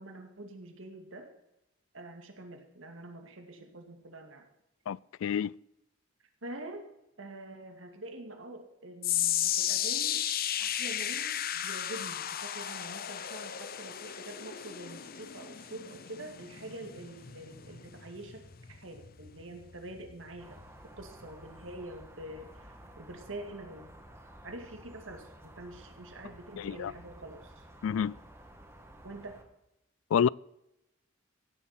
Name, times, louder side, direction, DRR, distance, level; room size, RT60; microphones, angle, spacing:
voice 1, 0.0-1.3 1.9-4.5 6.4-6.9 7.2-10.2 10.6-23.9 24.4-27.6 29.0-29.4, right 1 dB, 70° right, 2.3 m, -46 dB
voice 2, 4.9-5.5 26.6-26.9 27.8-28.1 30.1-30.3, left 7 dB, 80° left, 0.3 m, -28 dB
sound 1, 9.0-21.4 21.7-22.0 22.7-22.8, left 11 dB, 50° left, 0.7 m, -35 dB
sound 2, 20.4-29.4, right 1 dB, 15° right, 1.7 m, -53 dB
16.0 x 7.3 x 5.9 m
head